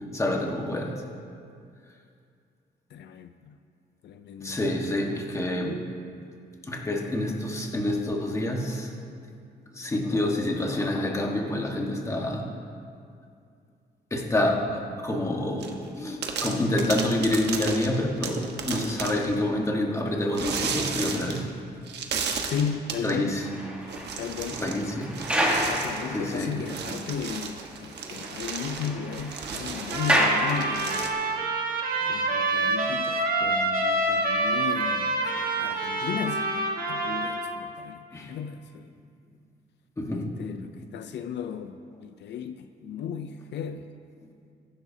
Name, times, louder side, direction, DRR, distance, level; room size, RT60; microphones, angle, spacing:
voice 1, 0.1-1.0 4.4-5.8 6.6-8.9 9.7-12.5 14.1-21.5 23.0-23.4 24.6-25.2 26.1-26.6 38.1-38.3 40.0-40.4, left 1 dB, 15° left, 0 dB, 1.4 m, -27 dB
voice 2, 2.9-3.6 4.0-5.2 22.4-23.4 24.2-24.6 25.7-31.2 32.1-38.9 40.1-43.9, left 7 dB, 80° left, 9 dB, 0.5 m, -35 dB
sound 1, 15.6-15.9 16.2-19.3 20.3-21.5 21.9-23.1 23.9-24.9 25.1-31.1, right 5 dB, 70° right, 1.2 m, -34 dB
sound 2, 23.1-26.9 27.2-27.3 27.6-27.7 28.0-31.3 32.0-32.1, equal, 5° right, 1.5 m, -30 dB
Trumpet, 29.9-37.5, right 2 dB, 55° right, 1.5 m, -27 dB
21.5 x 11.0 x 2.8 m, 2.4 s
wide cardioid pair, 155°, 18 cm